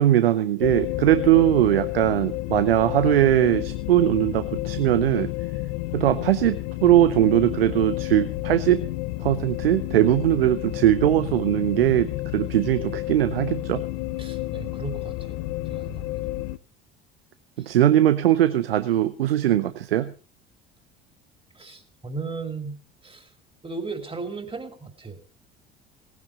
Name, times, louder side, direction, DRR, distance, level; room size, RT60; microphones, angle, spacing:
voice 1, 0.0-5.3 5.9-8.8 9.2-13.8 17.6-20.1, right 12 dB, 80° right, 12 dB, 0.8 m, -20 dB
sound 1, 0.6-16.6, left 17 dB, 65° left, 0.8 m, -31 dB
voice 2, 14.2-15.4 15.7-16.1 17.6-17.7 21.5-23.3 23.6-25.2, right 4 dB, 20° right, 6 dB, 3.3 m, -36 dB
18.5 x 10.5 x 5.0 m, 0.38 s
figure-of-eight pair, 65°, 29 cm